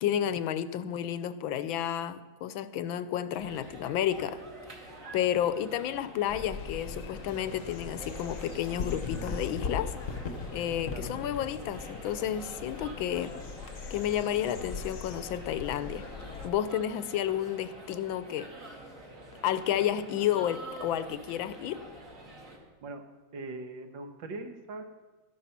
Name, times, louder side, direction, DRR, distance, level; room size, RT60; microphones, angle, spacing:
voice 1, 0.0-4.4 5.1-9.9 10.5-13.4 13.9-16.1 16.4-18.5 19.4-21.8, left 10 dB, 85° left, 1.5 m, -31 dB
sound 1, 3.3-22.6, right 2 dB, 40° right, 2.7 m, -47 dB
sound 2, 6.3-16.5, left 5 dB, 50° left, 1.0 m, -39 dB
voice 2, 22.5-23.0 23.3-24.8, right 3 dB, 70° right, 1.9 m, -41 dB
13.0 x 12.0 x 5.7 m
omnidirectional pair, 2.2 m